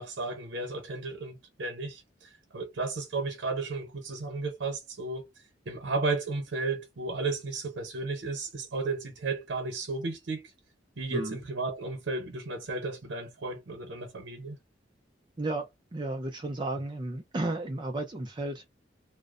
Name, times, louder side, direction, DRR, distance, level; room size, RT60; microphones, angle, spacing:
voice 1, 0.0-5.3 5.7-10.5 11.0-14.6, right 3 dB, 85° right, 0.8 m, -34 dB
voice 2, 15.4-18.7, right 2 dB, 25° right, 0.4 m, -33 dB
2.5 x 2.1 x 2.4 m
head